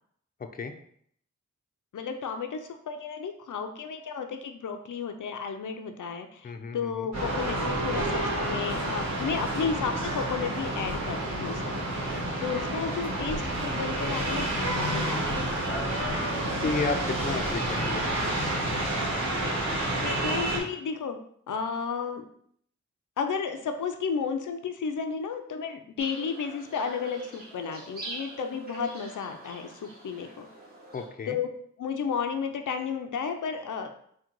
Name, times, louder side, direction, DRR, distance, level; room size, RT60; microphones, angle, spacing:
voice 1, 0.4-0.7 6.4-7.1 16.6-18.4 30.9-31.4, left 4 dB, 30° left, 6 dB, 0.4 m, -33 dB
voice 2, 1.9-12.1 12.4-15.9 20.0-21.2 21.5-22.3 23.2-30.5 31.3-31.5 31.8-33.9, left 6 dB, 90° left, 5 dB, 0.5 m, -33 dB
sound 1, 7.1-20.6, right 1 dB, 65° right, 1.4 m, -29 dB
sound 2, 26.0-31.1, right 3 dB, 30° right, 1.5 m, -43 dB
3.7 x 2.2 x 4.5 m, 0.66 s
wide cardioid pair, 55°, 30 cm